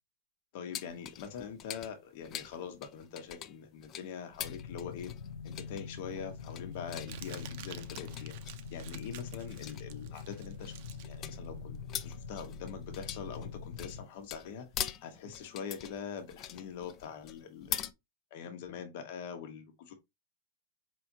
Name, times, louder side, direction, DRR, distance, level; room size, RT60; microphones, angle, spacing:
voice 1, 0.5-5.1 5.4-8.4 8.7-10.7 11.0-14.7 15.0-17.9 18.3-19.9, left 7 dB, 60° left, 1.2 m, -43 dB
sound 1, 0.7-17.9, left 10 dB, 35° left, 0.5 m, -44 dB
sound 2, 4.4-14.1, left 5 dB, 85° left, 0.8 m, -44 dB
Crumpling crinkling, 5.5-12.6, right 11 dB, 60° right, 0.6 m, -52 dB
4.7 x 3.4 x 2.7 m
hypercardioid pair, 115°, 0 cm